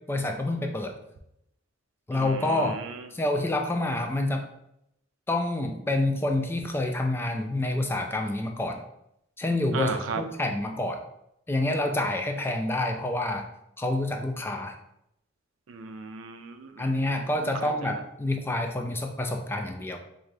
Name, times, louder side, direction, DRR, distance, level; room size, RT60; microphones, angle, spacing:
voice 1, 0.1-0.9 2.1-2.8 3.1-4.5 5.3-8.8 9.4-11.0 11.5-13.4 13.8-14.7 16.8-20.0, left 2 dB, 10° left, 4 dB, 0.3 m, -28 dB
voice 2, 2.1-3.0 9.7-10.2 15.7-16.9 17.6-17.9, right 5 dB, 75° right, 7 dB, 0.4 m, -35 dB
3.7 x 2.6 x 3.3 m, 0.77 s
head